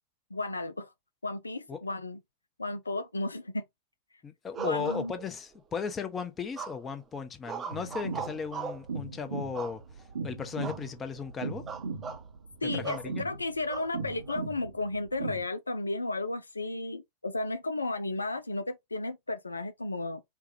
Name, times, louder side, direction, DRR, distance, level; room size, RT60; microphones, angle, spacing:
voice 1, 0.3-0.9 1.2-2.2 2.6-3.6 4.6-5.1 12.6-20.2, left 2 dB, 80° left, 0.4 m, -33 dB
voice 2, 4.2-9.8 10.2-11.6 12.7-13.2, left 6 dB, 20° left, 0.8 m, -36 dB
sound 1, 4.5-5.6 6.6-7.0 7.5-8.9 9.5-10.1 10.6-10.9 11.2-11.3 11.7-12.2 12.8-13.1 13.7-14.4, right 6 dB, 25° right, 0.7 m, -39 dB
sound 2, 7.7-15.4, right 4 dB, 70° right, 0.9 m, -38 dB
4.6 x 2.3 x 2.7 m
figure-of-eight pair, 90°, 0 cm